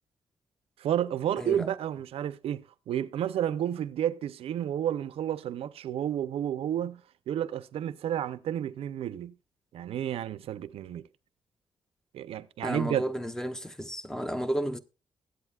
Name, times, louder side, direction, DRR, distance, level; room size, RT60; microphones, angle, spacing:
voice 1, 0.8-9.3 9.7-11.1 12.1-13.1, right 10 dB, 85° right, 0.6 m, -31 dB
voice 2, 12.6-14.8, equal, 5° left, 0.5 m, -32 dB
21.5 x 8.2 x 2.3 m
wide cardioid pair, 165°, 10 cm